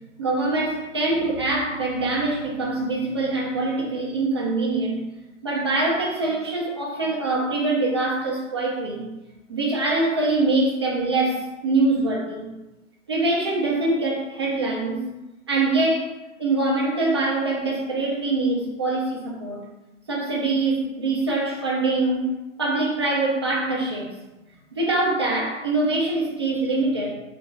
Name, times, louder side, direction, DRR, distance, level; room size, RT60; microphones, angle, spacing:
voice 1, 0.2-5.0 5.4-9.1 9.5-12.5 13.1-15.0 15.5-19.6 20.1-22.3 22.6-24.1 24.7-27.1, right 2 dB, 20° right, -3 dB, 0.4 m, -24 dB
3.1 x 2.2 x 3.9 m, 1.0 s
hypercardioid pair, 145°, 39 cm